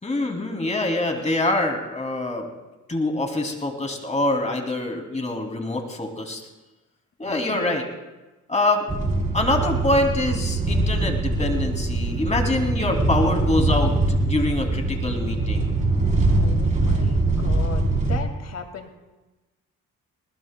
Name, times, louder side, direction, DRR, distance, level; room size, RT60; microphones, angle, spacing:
voice 1, 0.0-2.5 2.9-6.4 7.2-7.8 8.5-8.9 9.3-15.7, left 2 dB, 25° left, 2 dB, 2.7 m, -25 dB
voice 2, 7.2-7.8 16.4-18.9, left 5 dB, 60° left, 5 dB, 2.1 m, -37 dB
sound 1, 8.9-18.2, right 2 dB, 25° right, 3.6 m, -22 dB
21.0 x 20.0 x 2.2 m, 1.1 s
cardioid pair, 90°, 30 cm